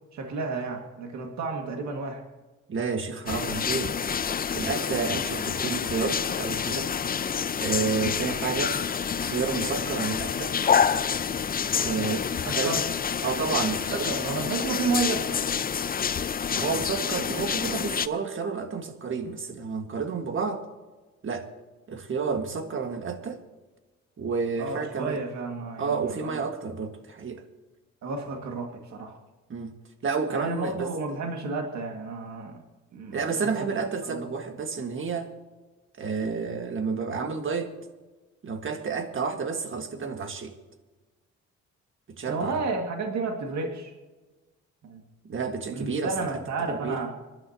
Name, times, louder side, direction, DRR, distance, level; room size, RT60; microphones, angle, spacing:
voice 1, 0.1-2.2 11.8-12.1 12.5-12.8 13.9-15.4 24.6-26.3 28.0-29.2 30.3-32.6 32.9-33.5 34.1-34.3 42.3-43.9 44.8-45.0 45.7-47.1, right 4 dB, 65° right, 2 dB, 2.1 m, -31 dB
voice 2, 2.7-3.9 4.5-6.9 7.6-8.8 9.2-10.6 11.8-12.7 13.2-14.1 16.5-20.6 21.2-21.5 21.9-23.4 24.2-25.2 25.8-27.4 29.5-29.7 30.0-30.9 33.1-35.3 36.0-37.7 38.4-40.5 42.1-42.6 45.2-46.4 46.7-47.0, right 5 dB, 40° right, 6 dB, 1.7 m, -30 dB
sound 1, 3.3-18.1, left 7 dB, 30° left, 0.5 m, -28 dB
25.5 x 11.5 x 2.9 m, 1.2 s
cardioid pair, 90°, 30 cm